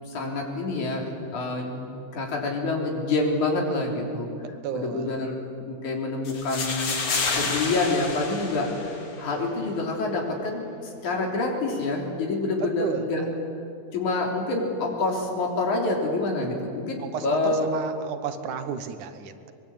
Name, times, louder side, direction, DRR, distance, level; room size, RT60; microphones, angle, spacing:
voice 1, 0.1-4.3 4.7-7.0 7.3-13.3 13.9-17.7, left 2 dB, 75° left, 0 dB, 4.9 m, -27 dB
voice 2, 4.4-5.1 12.6-13.1 17.0-19.5, right 7 dB, 80° right, 9 dB, 2.7 m, -33 dB
sound 1, 6.2-9.3, left 4 dB, 50° left, 3.3 m, -29 dB
23.0 x 22.0 x 8.7 m, 2.7 s
omnidirectional pair, 3.5 m